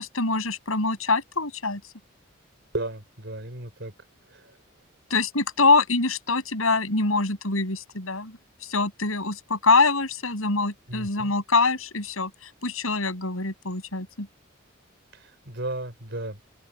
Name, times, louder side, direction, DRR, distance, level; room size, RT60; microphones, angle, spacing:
voice 1, 0.0-1.8 5.1-8.4 8.6-12.3 12.6-14.3, left 3 dB, 85° left, 6.6 m, -24 dB
voice 2, 2.7-3.9 10.9-11.3 15.5-16.4, right 2 dB, 55° right, 4.6 m, -33 dB
open air
head